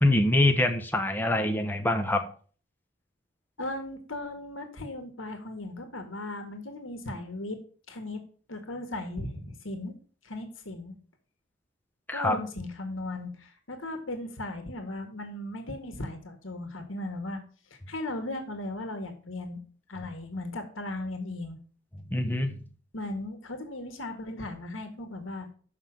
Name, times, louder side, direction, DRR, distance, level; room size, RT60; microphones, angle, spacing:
voice 1, 0.0-2.2 12.1-12.4 22.1-22.5, left 1 dB, 10° left, 5 dB, 0.9 m, -24 dB
voice 2, 3.6-7.6 7.9-8.2 8.5-9.9 10.2-10.9 12.1-17.4 17.7-19.6 19.9-21.6 22.9-25.5, left 2 dB, 85° left, 6 dB, 1.7 m, -37 dB
6.7 x 5.8 x 7.4 m, 0.41 s
head